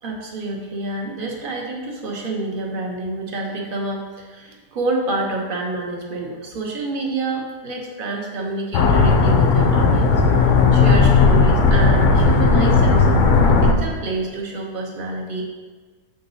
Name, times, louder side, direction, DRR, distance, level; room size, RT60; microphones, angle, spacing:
voice 1, 0.0-13.3 13.6-15.4, right 2 dB, 45° right, 0 dB, 0.7 m, -28 dB
sound 1, 8.7-13.7, left 4 dB, 75° left, 0.7 m, -15 dB
7.3 x 3.8 x 4.1 m, 1.4 s
omnidirectional pair, 2.0 m